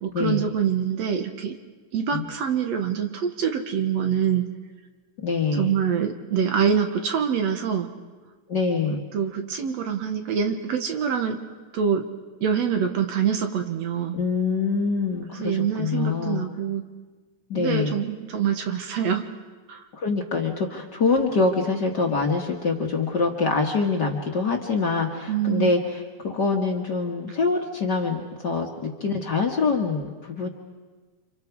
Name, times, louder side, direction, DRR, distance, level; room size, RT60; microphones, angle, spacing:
voice 1, 0.0-1.6 1.9-4.5 5.6-7.9 9.1-11.4 11.7-12.1 12.4-14.2 15.3-16.9 17.5-19.3 19.7-19.8 25.3-25.7, right 7 dB, 65° right, 5 dB, 2.5 m, -25 dB
voice 2, 5.2-5.7 8.5-9.0 14.1-16.4 17.5-17.9 19.9-30.5, left 4 dB, 40° left, 2 dB, 1.8 m, -25 dB
30.0 x 26.5 x 4.8 m, 1.3 s
omnidirectional pair, 3.4 m